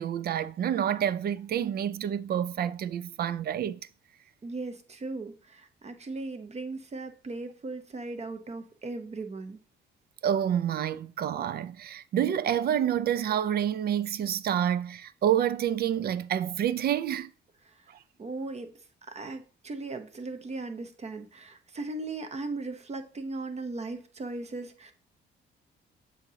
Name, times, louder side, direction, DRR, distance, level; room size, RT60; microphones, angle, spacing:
voice 1, 0.0-3.8 10.2-17.3 17.9-18.0, right 10 dB, 50° right, 0.4 m, -28 dB
voice 2, 4.4-9.6 17.6-17.9 18.2-18.7 19.1-24.9, right 3 dB, 35° right, 0.8 m, -38 dB
7.1 x 2.8 x 4.9 m
cardioid pair, 90°, 20 cm